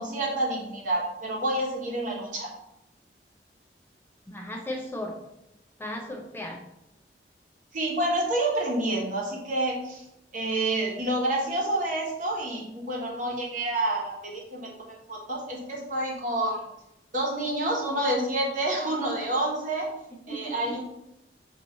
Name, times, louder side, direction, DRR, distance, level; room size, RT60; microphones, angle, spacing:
voice 1, 0.0-2.5 7.7-10.0 10.3-16.6 17.1-19.9 20.3-20.8, right 1 dB, 45° right, -3 dB, 1.2 m, -28 dB
voice 2, 4.3-5.1 5.8-6.6 20.1-20.6, left 1 dB, 15° left, 1 dB, 0.5 m, -36 dB
5.8 x 2.7 x 3.1 m, 0.85 s
head